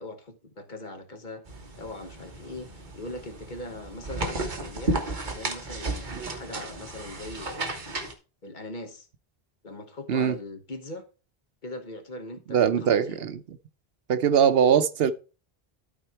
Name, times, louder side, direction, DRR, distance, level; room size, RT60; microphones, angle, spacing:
voice 1, 0.0-1.4 1.8-7.7 8.4-9.1 9.6-11.1 11.6-13.3, left 1 dB, 50° left, 1.3 m, -40 dB
sound 1, 1.5-8.1, right 2 dB, 50° right, 1.4 m, -34 dB
voice 2, 12.5-13.4 14.1-15.1, right 8 dB, 70° right, 0.9 m, -22 dB
12.5 x 4.4 x 4.5 m
omnidirectional pair, 1.0 m